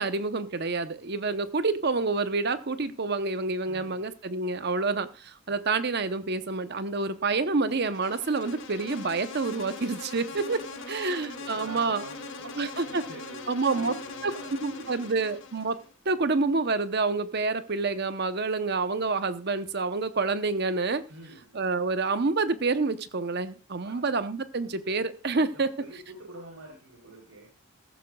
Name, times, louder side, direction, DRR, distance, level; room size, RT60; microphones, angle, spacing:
voice 1, 0.0-12.0 12.6-13.0 13.5-13.9 14.2-14.3 14.6-15.8 16.1-21.0 21.5-25.7, right 3 dB, 50° right, 11 dB, 0.8 m, -28 dB
voice 2, 3.7-4.0 10.1-10.4 11.4-15.1 21.1-21.5 23.8-24.0 25.5-27.5, right 1 dB, 80° right, -2 dB, 3.5 m, -46 dB
Insect, 7.7-15.9, left 3 dB, 60° left, 1.7 m, -41 dB
15.0 x 14.5 x 2.3 m, 0.31 s
head